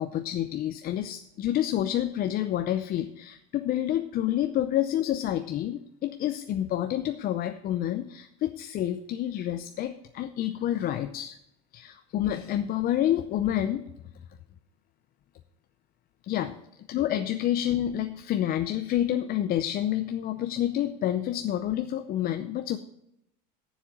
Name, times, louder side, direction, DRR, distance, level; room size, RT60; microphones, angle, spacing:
voice 1, 0.0-11.4 11.7-13.9 16.2-16.6 16.9-22.8, left 12 dB, 45° left, 8 dB, 0.6 m, -28 dB
7.2 x 7.1 x 8.1 m, 0.81 s
supercardioid pair, 105°, 20 cm